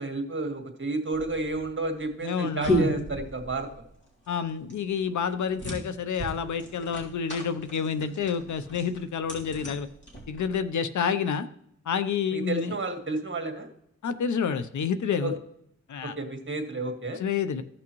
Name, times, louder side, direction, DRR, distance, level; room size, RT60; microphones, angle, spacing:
voice 1, 0.0-3.7 12.3-13.7 15.2-15.3 16.0-17.2, right 2 dB, 40° right, 4 dB, 1.7 m, -31 dB
sound 1, 1.1-10.6, equal, 40° left, 3.3 m, -34 dB
voice 2, 2.2-2.9 4.3-9.9 10.3-11.5 11.9-12.7 14.0-15.4 15.9-16.1 17.2-17.6, left 6 dB, 80° left, 12 dB, 0.7 m, -29 dB
14.5 x 6.1 x 3.1 m, 0.73 s
cardioid pair, 65°, 29 cm